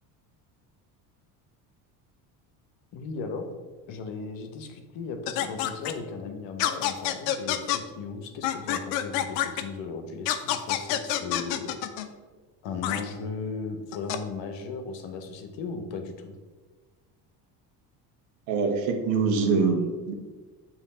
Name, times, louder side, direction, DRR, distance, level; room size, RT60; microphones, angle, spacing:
voice 1, 2.9-3.5 3.9-12.1 12.6-16.4, left 4 dB, 65° left, 6 dB, 1.0 m, -36 dB
sound 1, 5.3-5.9 6.6-7.8 8.4-9.6 10.3-12.1 12.8-13.0 13.9-14.2, left 12 dB, 85° left, 0.6 m, -27 dB
voice 2, 18.5-20.1, right 4 dB, 70° right, 4 dB, 1.1 m, -24 dB
7.1 x 3.1 x 4.2 m, 1.4 s
supercardioid pair, 75°, 48 cm